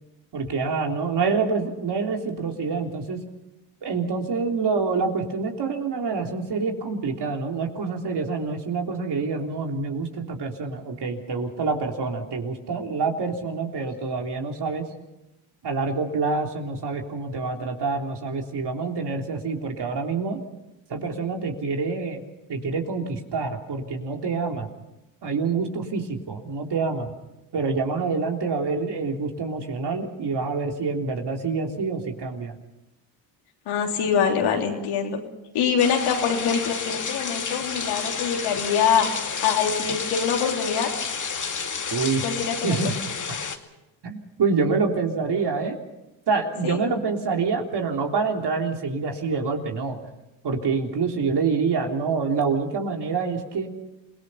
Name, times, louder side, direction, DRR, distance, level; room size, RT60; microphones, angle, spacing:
voice 1, 0.3-3.2 3.8-14.8 15.6-20.4 20.9-22.2 22.5-24.7 25.2-27.1 27.5-32.5 41.9-42.2 42.6-42.9 44.0-45.8 46.3-50.0 50.4-53.7, right 4 dB, 50° right, 2 dB, 3.5 m, -26 dB
voice 2, 33.7-35.2 35.5-39.1 39.4-40.9 42.2-42.9 46.6-46.8, left 7 dB, 75° left, 1 dB, 3.8 m, -24 dB
sound 1, 35.8-43.6, left 5 dB, 35° left, 2.2 m, -30 dB
28.0 x 18.0 x 5.7 m, 0.94 s
supercardioid pair, 65°, 50 cm